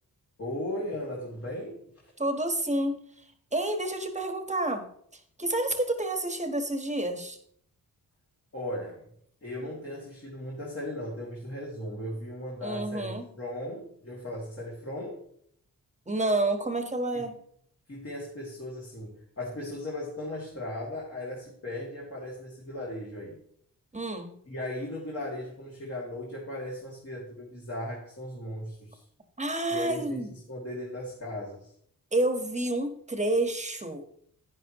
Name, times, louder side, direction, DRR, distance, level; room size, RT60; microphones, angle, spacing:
voice 1, 0.4-2.1 8.5-9.1 9.4-15.2 17.1-17.3 17.9-23.4 24.5-29.0 29.7-31.7, left 1 dB, 40° left, -4 dB, 2.6 m, -37 dB
voice 2, 2.2-3.0 3.5-4.9 5.1-7.4 12.6-13.3 16.1-17.4 23.9-24.3 29.4-30.3 32.1-34.0, right 2 dB, 20° right, 6 dB, 1.4 m, -29 dB
11.0 x 10.0 x 3.1 m, 0.66 s
wide cardioid pair, 100°, 36 cm